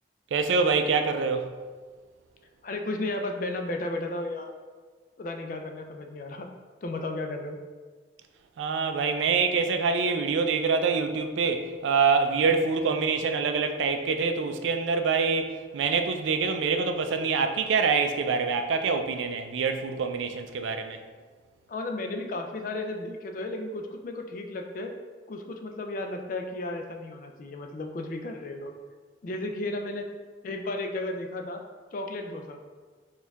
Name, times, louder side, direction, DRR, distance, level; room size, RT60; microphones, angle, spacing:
voice 1, 0.3-1.6 8.6-21.0, right 5 dB, 85° right, 0.3 m, -25 dB
voice 2, 2.6-4.5 5.2-6.5 6.8-7.6 21.7-24.9 25.3-28.7 29.2-30.1 30.4-31.6 31.9-32.6, left 2 dB, 45° left, 0.3 m, -34 dB
4.3 x 2.3 x 3.4 m
head